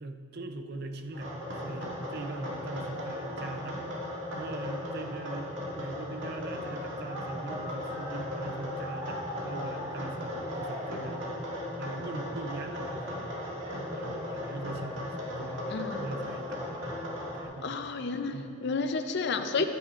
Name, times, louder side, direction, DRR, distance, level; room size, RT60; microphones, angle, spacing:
voice 1, 0.0-13.4 13.7-17.8 18.3-18.5 19.6-19.7, right 2 dB, 50° right, 7 dB, 0.6 m, -41 dB
sound 1, 1.1-17.4, left 1 dB, 70° right, 2.1 m, -36 dB
voice 2, 15.7-16.0 17.6-19.6, left 4 dB, 55° left, 7 dB, 0.5 m, -31 dB
14.5 x 10.0 x 2.5 m, 2.8 s
head